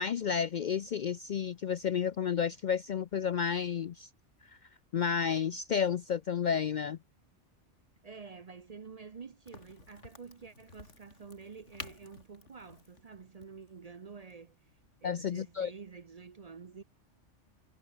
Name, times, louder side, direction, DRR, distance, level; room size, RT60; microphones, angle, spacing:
voice 1, 0.0-4.1 4.9-7.0 15.0-15.7, left 7 dB, 55° left, 0.5 m, -31 dB
voice 2, 8.0-14.6 15.0-16.8, right 5 dB, 40° right, 0.6 m, -49 dB
Crack, 9.5-14.9, left 3 dB, 90° left, 3.2 m, -52 dB
omnidirectional pair, 1.2 m